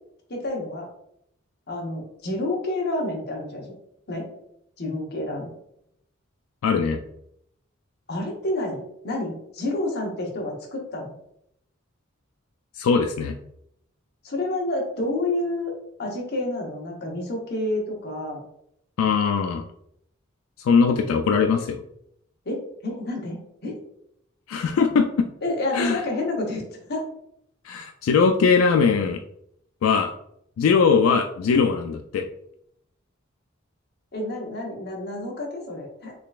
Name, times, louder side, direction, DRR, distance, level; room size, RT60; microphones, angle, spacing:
voice 1, 0.3-0.9 1.7-3.7 4.1-4.3 4.8-5.5 8.1-11.1 14.2-15.7 16.0-18.4 22.5-23.8 25.4-26.6 26.9-27.0 28.4-28.5 34.1-36.1, left 2 dB, 55° left, -1 dB, 0.9 m, -29 dB
voice 2, 6.6-7.0 12.8-13.3 19.0-19.6 20.6-21.8 24.5-25.3 25.7-26.0 27.6-29.2 29.8-30.1 30.6-32.3, left 5 dB, 90° left, 7 dB, 0.3 m, -20 dB
3.8 x 3.2 x 2.4 m, 0.74 s
head